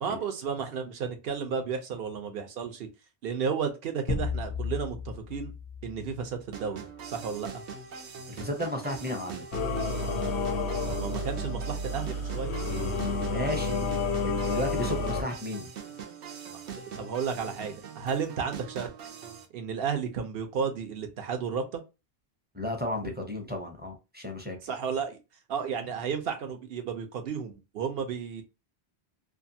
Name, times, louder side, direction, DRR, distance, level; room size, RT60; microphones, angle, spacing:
voice 1, 0.0-2.9 3.2-5.5 5.8-7.6 10.9-12.5 16.7-18.9 19.5-21.8 24.6-25.2 25.5-28.4, right 6 dB, 65° right, 6 dB, 0.9 m, -33 dB
sound 1, 4.1-6.9, left 5 dB, 45° left, 0.4 m, -35 dB
sound 2, 6.5-19.5, right 6 dB, 90° right, 0.9 m, -42 dB
voice 2, 8.3-9.4 13.2-13.8 14.2-15.7 22.5-24.6, left 1 dB, 10° right, 2 dB, 0.5 m, -33 dB
Singing / Musical instrument, 9.5-15.2, left 3 dB, 85° left, 0.9 m, -30 dB
2.6 x 2.4 x 2.6 m, 0.27 s
omnidirectional pair, 1.1 m